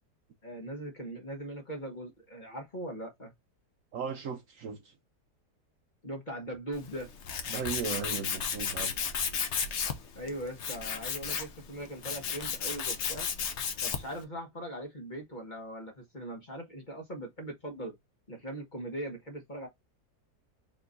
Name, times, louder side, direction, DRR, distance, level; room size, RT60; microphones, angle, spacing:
voice 1, 0.4-3.3 6.0-7.1 10.1-13.3 13.8-18.0 18.3-19.7, right 1 dB, 30° left, 1.4 m, -40 dB
voice 2, 3.9-4.9 7.5-9.0, right 6 dB, 65° right, 0.9 m, -36 dB
Tools, 6.7-14.2, left 6 dB, 55° left, 0.9 m, -34 dB
4.4 x 3.7 x 2.5 m
omnidirectional pair, 1.7 m